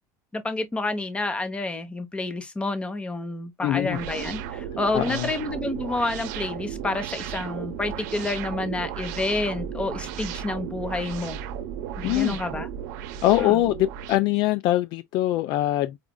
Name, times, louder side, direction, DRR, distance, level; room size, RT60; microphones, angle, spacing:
voice 1, 0.3-11.4 12.0-12.7 13.4-13.6, left 2 dB, 10° left, 0.9 m, -29 dB
voice 2, 3.6-4.0 4.9-5.3 12.0-12.4 13.2-16.0, left 15 dB, 50° left, 0.4 m, -23 dB
sound 1, 3.9-14.2, right 9 dB, 80° right, 0.7 m, -35 dB
5.0 x 2.4 x 2.2 m
cardioid pair, 150°, 9 cm